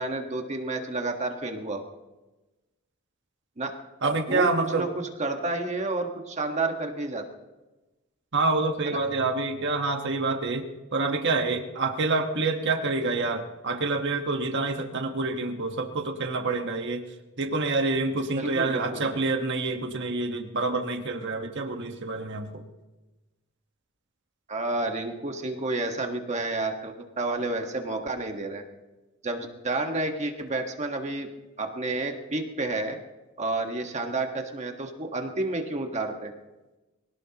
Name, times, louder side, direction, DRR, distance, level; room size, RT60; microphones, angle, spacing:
voice 1, 0.0-1.8 3.6-3.8 4.3-4.9 5.2-7.2 8.8-9.0 18.3-19.0 24.5-28.6 29.2-31.3 31.6-33.0 33.4-36.3, right 2 dB, 35° right, 4 dB, 1.4 m, -30 dB
voice 2, 4.0-4.8 8.3-10.7 10.9-17.0 17.4-22.6, right 3 dB, 60° right, 5 dB, 1.3 m, -27 dB
24.0 x 17.5 x 2.9 m, 1.1 s
head